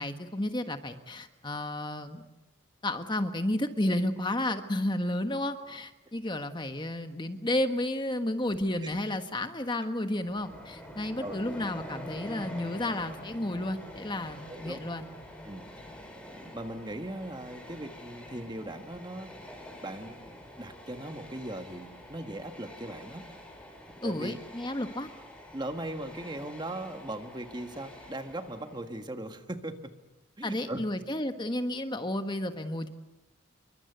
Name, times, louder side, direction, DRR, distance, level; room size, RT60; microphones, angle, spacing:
voice 1, 0.0-2.2 2.8-15.1 15.9-16.0 24.0-25.1 30.4-32.9, left 1 dB, 20° left, 8 dB, 1.5 m, -32 dB
Train, 10.1-29.0, left 1 dB, 5° left, 4.7 m, -46 dB
voice 2, 14.5-14.8 15.4-15.6 16.3-19.3 19.8-23.2 24.0-24.4 25.5-29.9 30.4-30.8, right 1 dB, 20° right, 7 dB, 1.6 m, -39 dB
28.0 x 24.0 x 8.1 m, 1.0 s
head